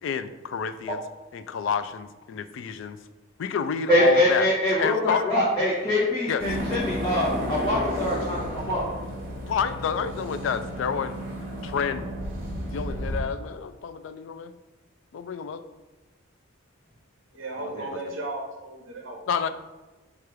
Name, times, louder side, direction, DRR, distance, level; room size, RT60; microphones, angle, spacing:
voice 1, 0.0-1.0 1.3-3.0 3.4-4.5 4.8-5.3 6.3-6.5 9.5-11.3 11.6-12.2 12.7-14.5 15.1-15.6 17.9-18.0 19.3-19.5, left 6 dB, 65° left, 12 dB, 0.3 m, -29 dB
voice 2, 3.9-8.8 17.7-17.8, left 1 dB, 25° left, -9 dB, 0.8 m, -23 dB
sound 1, 6.4-13.2, equal, 45° right, 1.1 m, -32 dB
voice 3, 17.3-19.2, right 2 dB, 65° right, 0 dB, 0.7 m, -35 dB
4.6 x 2.4 x 4.7 m, 1.1 s
head